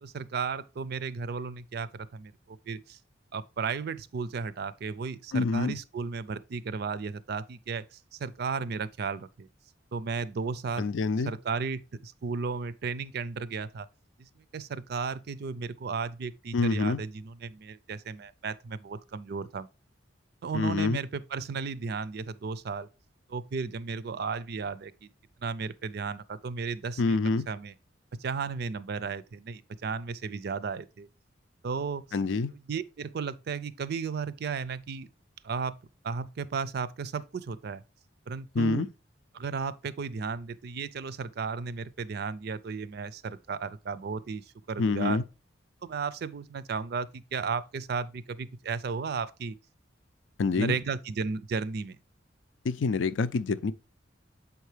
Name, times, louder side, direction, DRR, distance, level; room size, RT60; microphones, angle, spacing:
voice 1, 0.0-3.0 3.3-9.5 9.9-10.9 11.3-13.9 14.2-19.7 20.4-22.9 23.3-25.1 25.4-27.2 27.5-27.7 28.1-31.1 31.6-32.1 32.5-35.1 35.4-35.8 36.0-37.8 38.3-38.8 39.3-45.2 45.8-49.6 50.5-52.0, right 5 dB, 55° right, 0.4 m, -34 dB
voice 2, 5.3-5.7 10.8-11.3 16.5-17.0 20.5-21.0 27.0-27.5 32.1-32.5 38.5-38.9 44.8-45.2 50.4-50.8 52.6-53.7, left 4 dB, 85° left, 0.4 m, -26 dB
7.1 x 4.6 x 3.3 m
head